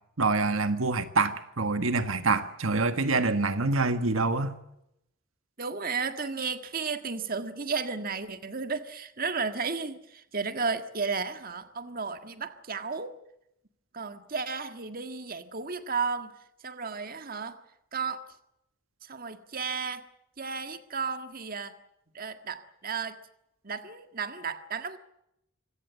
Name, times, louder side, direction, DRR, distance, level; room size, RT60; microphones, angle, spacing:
voice 1, 0.2-4.6, right 3 dB, 80° right, 10 dB, 1.5 m, -26 dB
voice 2, 5.6-13.2 13.9-16.3 16.6-17.5 17.9-18.2 19.1-20.0 20.4-21.7 22.1-23.2 23.6-25.0, right 5 dB, 45° right, 8 dB, 1.7 m, -33 dB
25.5 x 17.5 x 8.2 m, 0.82 s
head